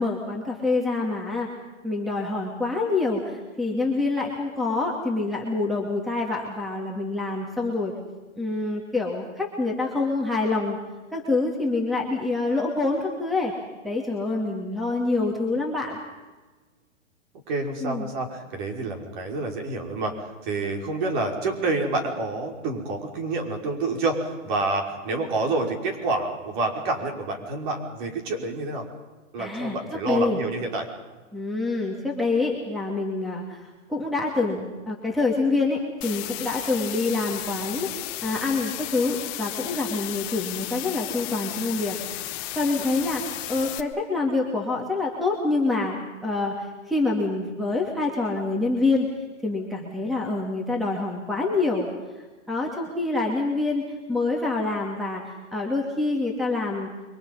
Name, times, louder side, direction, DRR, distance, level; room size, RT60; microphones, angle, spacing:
voice 1, 0.0-1.5 1.8-7.9 8.4-10.8 11.1-13.5 13.8-16.0 17.8-18.1 29.4-29.8 30.1-30.4 31.3-42.0 42.2-49.1 49.4-51.9 52.5-53.8 54.1-56.9, left 3 dB, ahead, 1 dB, 2.2 m, -26 dB
voice 2, 17.5-28.9 29.3-30.9, right 3 dB, 40° right, 3 dB, 5.7 m, -28 dB
sound 1, 36.0-43.8, left 16 dB, 25° left, 1.2 m, -34 dB
28.5 x 24.0 x 5.6 m, 1.3 s
hypercardioid pair, 150°, 38 cm